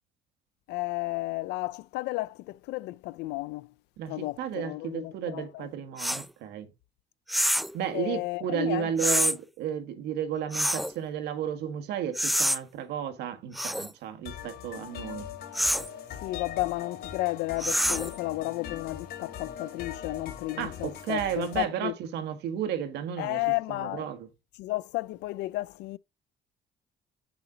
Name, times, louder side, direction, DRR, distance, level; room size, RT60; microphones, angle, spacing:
voice 1, 0.7-3.7 4.1-5.7 7.9-9.3 16.2-21.9 23.2-24.1 24.6-26.0, left 20 dB, 85° left, 0.5 m, -33 dB
voice 2, 4.0-6.7 7.7-15.3 20.6-23.4 23.7-24.3, right 9 dB, 85° right, 1.7 m, -33 dB
sound 1, 6.0-6.2 7.3-7.8 9.0-9.4 10.5-10.9 12.1-12.6 13.5-13.9 15.5-15.9 17.6-18.2, equal, ahead, 0.4 m, -26 dB
sound 2, 14.3-21.6, left 9 dB, 65° left, 2.9 m, -41 dB
9.0 x 6.9 x 3.9 m
cardioid pair, 110°, 17 cm